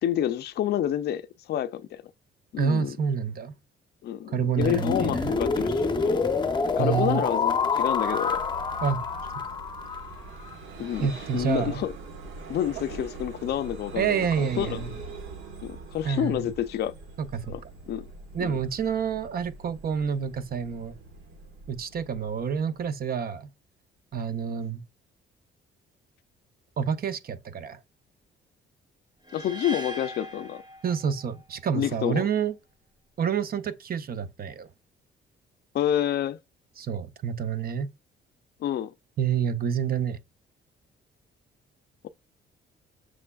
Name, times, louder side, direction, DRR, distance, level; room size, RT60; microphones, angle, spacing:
voice 1, 0.0-2.0 2.5-3.0 4.0-6.3 6.7-8.4 10.8-11.9 12.5-14.8 15.6-16.9 17.5-17.6 17.9-18.0 18.4-18.6 29.3-30.6 31.7-32.3 35.7-36.4 38.6-38.9, left 10 dB, 55° left, 0.4 m, -29 dB
voice 2, 2.6-3.5 4.3-5.3 6.8-7.2 8.8-9.0 11.0-11.8 14.0-14.9 16.0-16.5 17.3-17.5 18.3-20.9 21.7-23.5 24.1-24.8 26.8-27.8 30.8-32.5 33.2-34.7 36.8-37.9 39.2-40.2, right 7 dB, 50° right, 0.6 m, -28 dB
sound 1, 4.6-10.5, left 4 dB, 25° left, 0.7 m, -27 dB
Vehicle, 7.6-23.1, right 3 dB, 85° right, 1.4 m, -43 dB
sound 2, 29.3-31.4, equal, 20° right, 1.2 m, -40 dB
6.2 x 3.3 x 2.3 m
cardioid pair, 90°, 20 cm